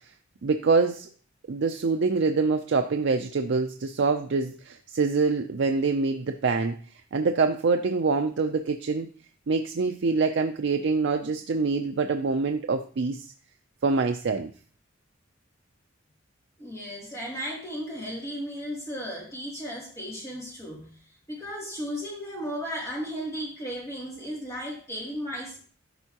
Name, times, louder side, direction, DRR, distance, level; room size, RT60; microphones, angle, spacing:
voice 1, 0.4-1.1 1.5-6.8 7.1-9.1 9.5-13.2 13.8-14.5, right 4 dB, 60° right, 6 dB, 0.4 m, -25 dB
voice 2, 16.6-20.9 21.3-25.6, equal, 15° left, -4 dB, 2.8 m, -35 dB
12.5 x 4.5 x 2.9 m, 0.42 s
head